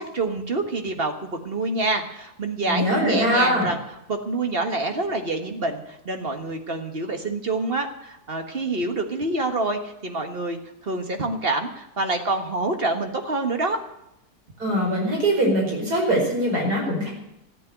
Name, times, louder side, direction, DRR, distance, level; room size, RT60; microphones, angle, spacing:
voice 1, 0.0-3.8 4.1-13.8, right 2 dB, 35° right, 5 dB, 1.6 m, -27 dB
voice 2, 2.7-3.7 14.6-17.1, equal, 70° right, -1 dB, 5.6 m, -22 dB
14.0 x 8.8 x 9.2 m, 0.84 s
omnidirectional pair, 1.7 m